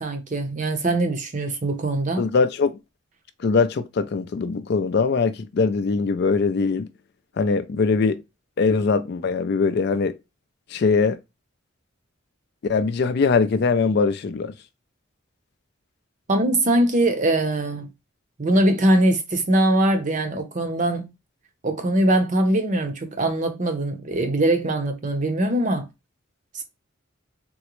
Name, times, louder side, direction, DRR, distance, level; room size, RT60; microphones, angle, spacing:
voice 1, 0.0-2.2 16.3-17.9 18.4-21.1 21.6-25.9 26.5-26.6, right 1 dB, 35° right, 0.6 m, -22 dB
voice 2, 2.2-2.8 3.4-6.9 7.4-8.2 8.6-10.2 10.7-11.2 12.6-14.5, left 4 dB, 50° left, 0.3 m, -21 dB
3.7 x 2.1 x 2.9 m
head